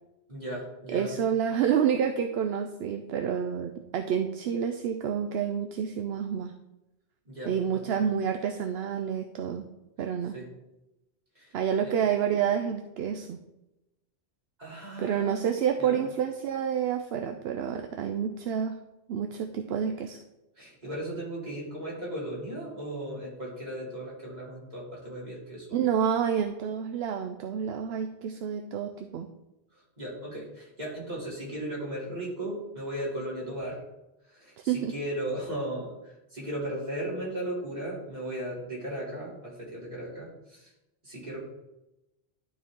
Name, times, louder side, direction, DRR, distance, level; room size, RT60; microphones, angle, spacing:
voice 1, 0.3-1.2 7.2-8.0 10.3-10.5 11.3-11.5 11.8-12.0 14.6-15.4 15.8-16.0 20.6-25.8 29.7-33.8 34.3-40.7 41.0-41.4, right 1 dB, 40° right, -6 dB, 3.2 m, -36 dB
voice 2, 0.9-6.5 7.5-9.7 10.0-10.4 11.5-13.4 15.0-18.8 19.1-20.2 25.7-29.3 34.6-34.9, right 8 dB, 75° right, 6 dB, 0.8 m, -29 dB
12.0 x 4.6 x 3.7 m, 0.95 s
omnidirectional pair, 1.1 m